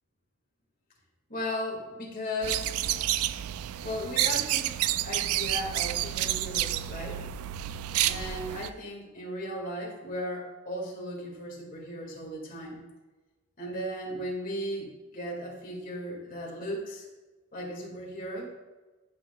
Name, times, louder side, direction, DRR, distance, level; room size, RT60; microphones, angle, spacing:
voice 1, 1.3-2.7 3.8-4.7 5.0-7.2 8.0-12.8 13.6-17.1 17.5-18.5, equal, 40° left, -2 dB, 2.0 m, -36 dB
sound 1, 2.4-8.7, right 13 dB, 80° right, 0.3 m, -29 dB
13.0 x 5.6 x 2.3 m, 1.2 s
head